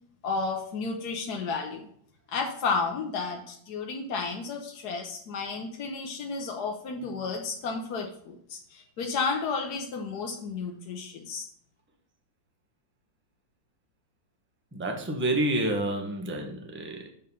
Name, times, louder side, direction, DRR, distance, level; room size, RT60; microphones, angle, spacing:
voice 1, 0.2-1.9 2.3-11.5, left 4 dB, 65° left, 2 dB, 1.3 m, -32 dB
voice 2, 14.7-17.1, right 1 dB, 10° right, 2 dB, 1.0 m, -29 dB
7.0 x 5.6 x 5.4 m, 0.67 s
omnidirectional pair, 2.0 m